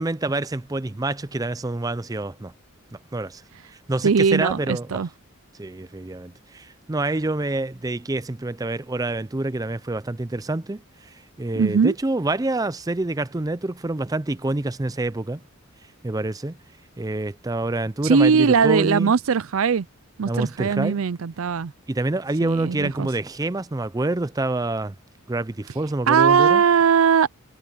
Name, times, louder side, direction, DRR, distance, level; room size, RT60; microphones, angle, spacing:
voice 1, 0.0-2.5 3.1-3.4 3.9-5.0 5.6-15.4 16.0-16.6 17.0-19.1 20.3-21.0 21.9-24.9 25.3-26.6, right 2 dB, 15° right, 0.5 m, -27 dB
voice 2, 4.0-5.1 11.6-11.9 18.0-19.9 20.2-21.7 22.4-23.1 26.1-27.3, right 6 dB, 75° right, 0.5 m, -19 dB
head